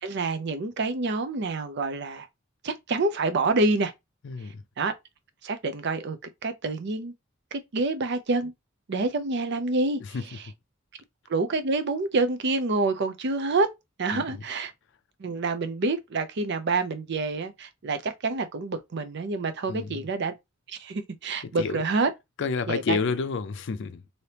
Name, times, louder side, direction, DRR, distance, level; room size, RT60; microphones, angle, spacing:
voice 1, 0.0-2.3 2.6-3.9 4.8-4.9 5.4-6.2 6.4-7.1 7.5-8.5 8.9-10.0 11.3-13.7 14.0-14.7 15.2-20.3 20.7-22.1 22.7-23.0, right 3 dB, 60° right, 0.5 m, -27 dB
voice 2, 4.2-4.6 10.0-10.2 14.1-14.4 19.7-20.0 21.4-21.8 22.4-24.0, left 5 dB, 65° left, 0.4 m, -30 dB
3.3 x 2.7 x 2.8 m
head